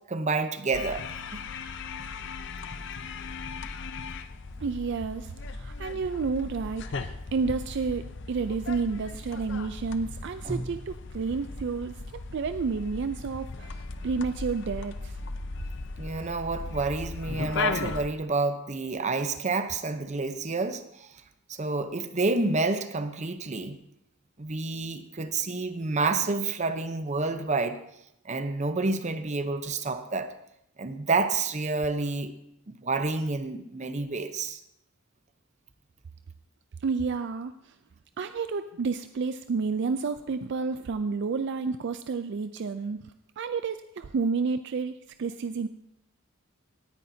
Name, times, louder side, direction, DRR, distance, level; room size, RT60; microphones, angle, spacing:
voice 1, 0.1-1.1 1.3-1.4 10.4-10.7 16.0-21.1 21.5-23.8 24.4-27.8 28.2-30.3 30.8-32.3 32.7-34.6, right 3 dB, 35° right, 9 dB, 0.7 m, -29 dB
sound 1, 0.7-18.1, left 4 dB, 60° left, 0.6 m, -37 dB
voice 2, 4.6-15.2 36.8-37.7 38.2-45.7, right 4 dB, 60° right, 10 dB, 0.4 m, -31 dB
18.0 x 9.9 x 2.7 m, 0.79 s
head